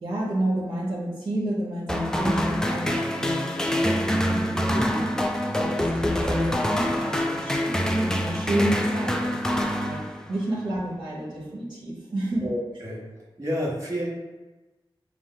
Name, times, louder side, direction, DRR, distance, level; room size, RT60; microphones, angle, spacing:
voice 1, 0.0-4.7 5.6-10.0 10.3-12.5, right 1 dB, 60° right, -9 dB, 1.2 m, -30 dB
sound 1, 1.9-10.5, equal, 5° left, 0.4 m, -25 dB
voice 2, 4.7-5.1 12.4-14.1, equal, 35° right, -6 dB, 1.3 m, -30 dB
6.1 x 2.0 x 3.8 m, 1.1 s
wide cardioid pair, 130°, 9 cm